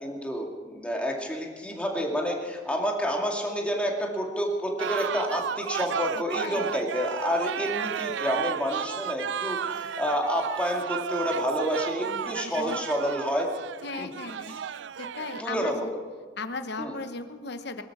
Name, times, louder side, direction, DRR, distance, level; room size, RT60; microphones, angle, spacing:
voice 1, 0.0-13.5 14.0-14.1 15.4-15.9 16.8-17.0, equal, 5° left, 0 dB, 2.3 m, -29 dB
sound 1, 4.8-15.4, right 8 dB, 65° right, 0.4 m, -33 dB
voice 2, 12.1-12.8 13.8-14.6 15.0-15.9 16.4-17.8, left 3 dB, 60° left, 8 dB, 1.0 m, -37 dB
22.5 x 13.0 x 4.9 m, 1.5 s
head